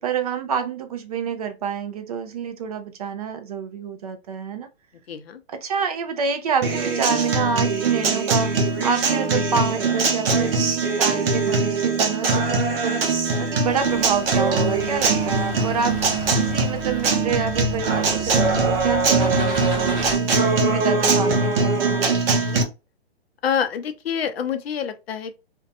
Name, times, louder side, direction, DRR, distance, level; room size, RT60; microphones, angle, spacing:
voice 1, 0.0-4.7 5.5-20.3 20.6-22.3, right 6 dB, 35° right, 0.4 m, -28 dB
voice 2, 5.1-5.4 23.4-25.4, left 8 dB, 65° left, 0.6 m, -26 dB
Acoustic guitar, 6.6-22.6, right 4 dB, 60° right, 0.9 m, -21 dB
sound 1, 13.6-20.2, right 1 dB, 20° right, 1.0 m, -34 dB
2.6 x 2.2 x 2.5 m
hypercardioid pair, 140°, 32 cm